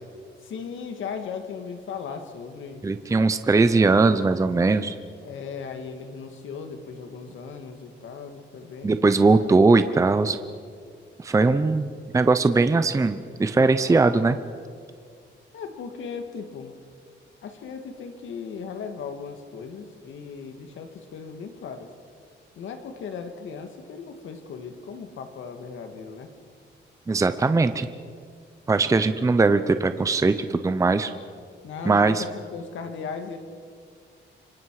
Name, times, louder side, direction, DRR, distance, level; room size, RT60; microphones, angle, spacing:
voice 1, 0.4-2.8 5.2-9.5 15.5-16.7 17.4-21.9 22.6-26.3 31.6-33.4, left 6 dB, 85° left, 6 dB, 2.1 m, -37 dB
voice 2, 2.8-4.9 8.8-10.4 11.2-14.4 27.1-27.9 28.7-31.1 31.9-32.2, right 3 dB, 15° right, 11 dB, 0.6 m, -20 dB
27.0 x 24.0 x 4.9 m, 2.1 s
wide cardioid pair, 145°, 20 cm